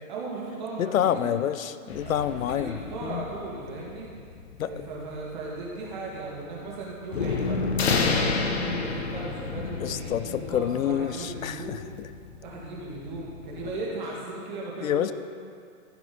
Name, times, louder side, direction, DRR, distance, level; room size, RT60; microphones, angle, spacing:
voice 1, 0.0-1.3 1.8-2.1 2.5-4.1 4.6-7.6 8.6-11.9 12.4-15.1, right 2 dB, 35° right, -5 dB, 2.4 m, -37 dB
voice 2, 0.8-2.7 3.0-3.2 4.6-4.7 9.8-11.8 14.8-15.1, left 10 dB, 70° left, 13 dB, 0.5 m, -27 dB
sound 1, 1.9-13.7, left 4 dB, 50° left, 1.1 m, -31 dB
14.5 x 5.0 x 5.6 m, 2.3 s
hypercardioid pair, 170°, 42 cm